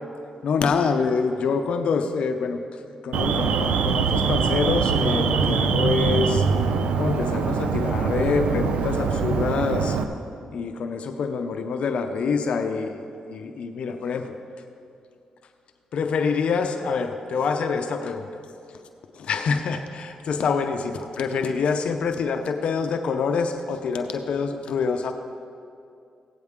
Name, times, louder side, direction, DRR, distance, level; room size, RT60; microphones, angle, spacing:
voice 1, 0.4-2.6 3.0-6.4 6.9-10.0 10.5-13.0 13.3-14.4 15.9-18.3 19.2-25.1, left 5 dB, 70° left, 6 dB, 0.6 m, -26 dB
Alarm, 3.1-10.0, right 5 dB, 85° right, 0.6 m, -23 dB
16.0 x 9.2 x 3.6 m, 2.5 s
cardioid pair, 80°, 2 cm